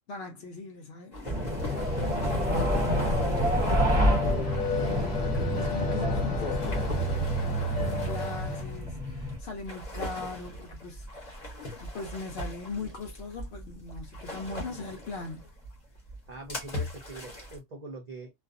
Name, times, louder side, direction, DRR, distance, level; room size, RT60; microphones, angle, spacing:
voice 1, 0.1-1.3 2.0-4.0 4.7-6.9 7.4-11.3 11.8-15.5, left 3 dB, 60° left, 0.8 m, -40 dB
sound 1, 1.1-17.6, left 1 dB, 35° left, 1.0 m, -40 dB
sound 2, 1.2-9.4, equal, 30° right, 0.9 m, -28 dB
sound 3, 1.6-8.6, equal, 75° left, 1.1 m, -33 dB
voice 2, 16.3-18.3, right 2 dB, 55° right, 0.4 m, -43 dB
2.5 x 2.2 x 2.4 m
omnidirectional pair, 1.4 m